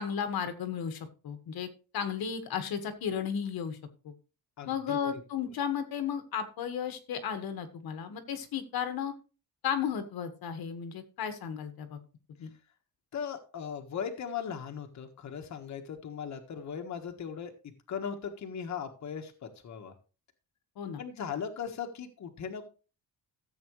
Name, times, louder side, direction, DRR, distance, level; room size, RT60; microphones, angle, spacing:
voice 1, 0.0-1.7 1.9-3.8 4.0-4.1 4.7-9.1 9.6-12.0 12.4-12.5 20.8-21.0, left 8 dB, 75° left, 8 dB, 1.8 m, -34 dB
voice 2, 4.6-5.1 13.1-17.5 17.9-19.9 21.0-22.6, left 7 dB, 50° left, 4 dB, 1.6 m, -38 dB
14.5 x 8.0 x 3.2 m, 0.33 s
cardioid pair, 160°, 37 cm